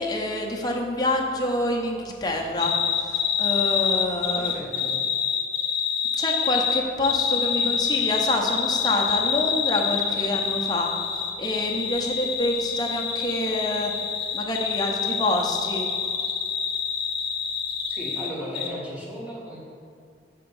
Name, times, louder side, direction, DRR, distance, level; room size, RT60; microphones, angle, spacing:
voice 1, 0.0-2.7 3.0-4.5 6.2-10.9 11.4-13.9 14.3-15.8, left 1 dB, 25° left, 0 dB, 0.6 m, -27 dB
sound 1, 2.6-18.3 18.5-18.7, left 7 dB, 75° left, 0.8 m, -26 dB
voice 2, 4.3-5.0 17.9-19.6, equal, 10° right, -5 dB, 1.0 m, -36 dB
6.6 x 2.9 x 5.3 m, 2.3 s
head